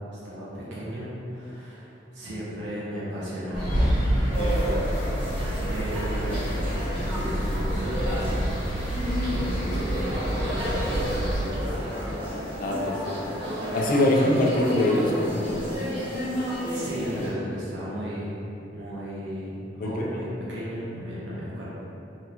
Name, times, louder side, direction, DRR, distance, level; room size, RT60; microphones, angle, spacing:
voice 1, 0.1-1.9 2.1-3.9 4.2-4.8 5.6-8.4 8.7-11.6 16.7-18.4 18.7-21.7, equal, 75° right, -8 dB, 0.6 m, -34 dB
sound 1, 3.5-11.4, equal, 25° left, 1.3 m, -27 dB
sound 2, 4.3-17.3, equal, 30° right, 0.7 m, -32 dB
voice 2, 12.6-13.1 13.7-15.6 19.8-19.9, left 1 dB, 50° left, -1 dB, 0.4 m, -23 dB
3.6 x 2.4 x 2.8 m, 2.9 s
head